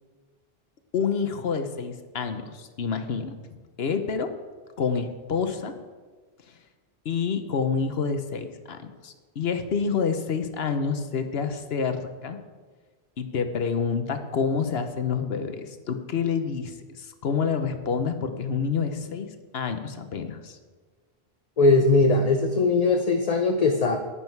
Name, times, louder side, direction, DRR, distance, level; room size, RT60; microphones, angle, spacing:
voice 1, 0.9-4.3 4.8-5.7 6.5-6.6 7.0-12.4 13.2-20.6, left 6 dB, 75° left, 8 dB, 1.1 m, -28 dB
voice 2, 21.6-24.0, left 3 dB, 40° left, 4 dB, 0.7 m, -20 dB
11.0 x 9.9 x 4.6 m, 1.4 s
omnidirectional pair, 1.1 m